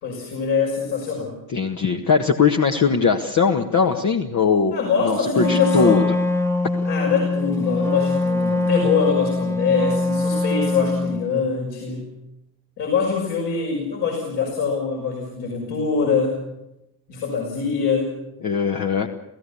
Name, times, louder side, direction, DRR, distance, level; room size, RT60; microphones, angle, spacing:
voice 1, 0.0-1.4 4.7-6.1 6.8-12.1 12.8-16.5 17.1-18.2, left 5 dB, 55° left, -1 dB, 6.0 m, -23 dB
voice 2, 1.5-4.7 5.0-6.0 18.4-19.1, left 5 dB, 35° left, 3 dB, 1.7 m, -20 dB
Wind instrument woodwind instrument, 5.3-11.3, left 2 dB, 5° left, 1.5 m, -23 dB
29.5 x 16.5 x 7.1 m, 0.91 s
figure-of-eight pair, 55°, 48 cm